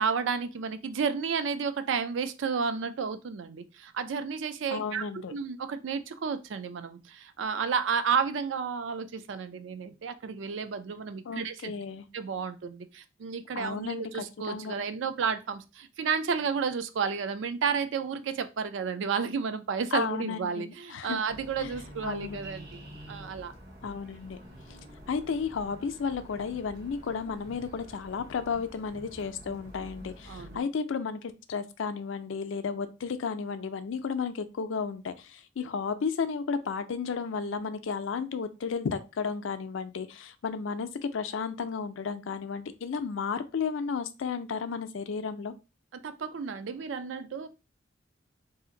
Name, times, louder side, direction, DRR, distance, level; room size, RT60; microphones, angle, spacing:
voice 1, 0.0-5.0 5.3-11.7 12.1-22.7 23.1-23.5 30.3-30.6 45.9-47.5, right 6 dB, 70° right, 0.4 m, -32 dB
voice 2, 4.7-5.3 11.3-12.0 13.5-14.7 19.9-21.2 21.6-21.7 22.0-22.4 23.8-24.4 25.1-45.5, left 5 dB, 75° left, 0.4 m, -33 dB
sound 1, 21.3-30.6, equal, 55° right, 1.0 m, -48 dB
2.7 x 2.5 x 3.8 m
head